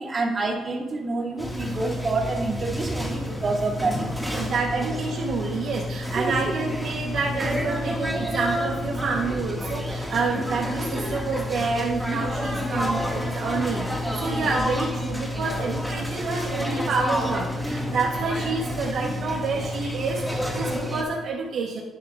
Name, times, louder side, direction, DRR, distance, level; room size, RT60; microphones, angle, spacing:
voice 1, 0.0-4.4 6.1-6.5, right 3 dB, 35° right, -3 dB, 3.5 m, -28 dB
sound 1, 1.4-21.0, left 1 dB, ahead, 2.5 m, -29 dB
voice 2, 4.3-21.8, right 4 dB, 70° right, -2 dB, 1.6 m, -28 dB
15.0 x 11.0 x 2.8 m, 1.2 s
cardioid pair, 90°, 0 cm